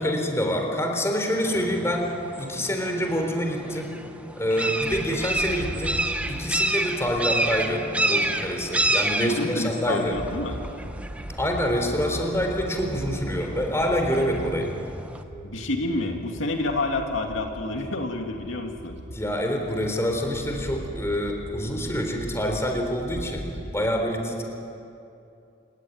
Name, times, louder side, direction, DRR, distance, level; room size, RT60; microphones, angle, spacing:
voice 1, 0.0-2.1 2.4-4.0 4.4-6.0 6.3-10.2 11.3-14.7 19.1-23.5 23.7-24.4, equal, 15° left, 3 dB, 3.7 m, -26 dB
sound 1, 1.4-15.2, right 1 dB, 5° right, 1.1 m, -30 dB
Bird, 4.8-9.3 9.7-23.9, equal, 60° right, 2.4 m, -40 dB
voice 2, 9.2-10.6 15.4-19.0, left 2 dB, 75° left, 3 dB, 2.5 m, -29 dB
29.0 x 19.5 x 9.5 m, 2.7 s
head